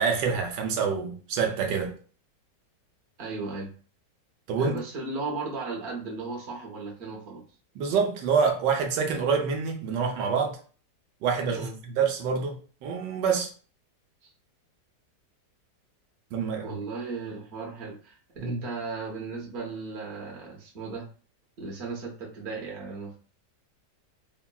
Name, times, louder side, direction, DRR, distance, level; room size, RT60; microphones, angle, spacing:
voice 1, 0.0-1.9 4.5-4.8 7.8-10.6 11.2-13.5 16.3-16.8 18.4-18.6, right 6 dB, 85° right, 1.2 m, -26 dB
voice 2, 3.2-3.7 4.6-7.4 11.5-11.7 14.2-14.3 16.6-21.1 21.6-23.2, right 4 dB, 50° right, 0.9 m, -36 dB
3.6 x 2.2 x 2.2 m
omnidirectional pair, 1.9 m